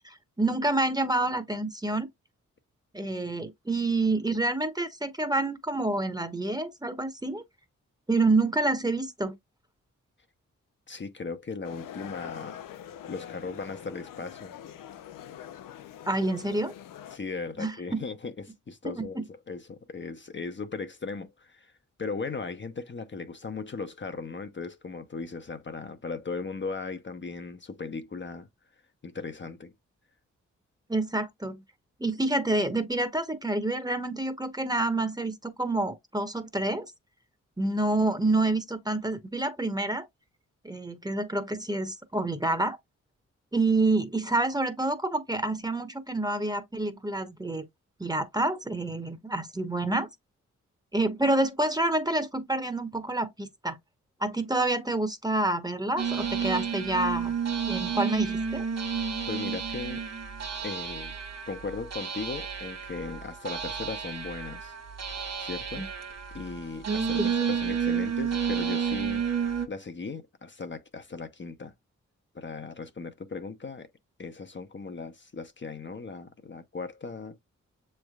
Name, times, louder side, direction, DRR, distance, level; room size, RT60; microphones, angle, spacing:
voice 1, 0.0-2.1 2.9-7.4 8.1-9.3 16.1-16.7 17.6-18.0 18.8-19.2 30.9-31.6 32.0-36.9 37.6-40.1 40.6-42.8 43.5-47.7 48.0-50.1 50.9-53.8 54.2-57.4 57.7-58.6 65.7-65.9 67.2-67.3, right 2 dB, 10° right, 1.0 m, -28 dB
voice 2, 10.9-12.6 13.1-14.5 17.1-21.7 22.0-28.5 29.0-29.7 59.3-60.1 60.6-61.1 61.5-64.8 65.4-65.9 66.3-69.2 69.7-71.7 72.3-73.9 74.2-77.4, left 4 dB, 35° left, 0.7 m, -37 dB
sound 1, 11.6-17.2, left 10 dB, 85° left, 0.6 m, -44 dB
sound 2, 56.0-69.7, right 7 dB, 55° right, 1.2 m, -31 dB
6.9 x 3.3 x 2.3 m
supercardioid pair, 45°, 32 cm